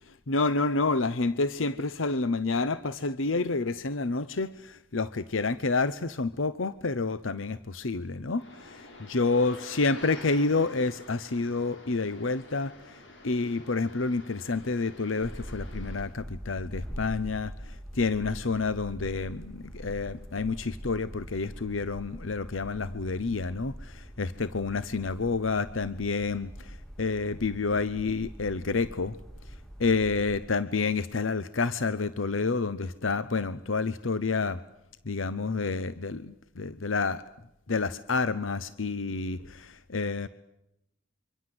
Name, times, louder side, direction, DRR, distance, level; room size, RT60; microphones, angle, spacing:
voice 1, 0.3-13.0 13.2-29.2 29.8-34.6 35.0-37.2 37.7-40.3, left 3 dB, 90° left, 15 dB, 0.9 m, -29 dB
sound 1, 8.4-16.0, left 2 dB, 70° left, 6.7 m, -48 dB
sound 2, 15.2-30.5, equal, 5° left, 2.9 m, -43 dB
27.0 x 25.0 x 7.9 m, 0.84 s
head